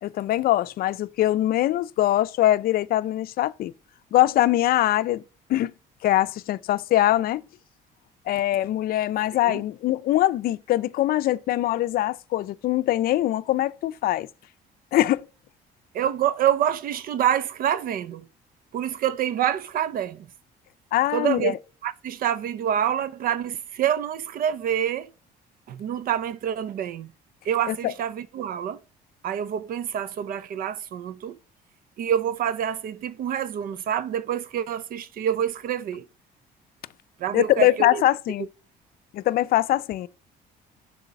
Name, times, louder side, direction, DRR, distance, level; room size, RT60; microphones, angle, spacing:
voice 1, 0.0-3.7 4.1-5.2 5.5-5.7 6.0-7.4 8.3-14.3 14.9-15.2 20.9-21.5 27.7-27.9 37.3-38.5 39.1-40.1, left 14 dB, 60° left, 0.5 m, -22 dB
voice 2, 15.9-18.3 18.7-20.3 21.1-21.5 21.8-25.1 25.7-27.1 27.4-28.8 29.2-31.4 32.0-36.1 37.2-38.0 38.4-38.5, right 9 dB, 60° right, 0.5 m, -27 dB
6.7 x 4.0 x 5.8 m
cardioid pair, 110°, 17 cm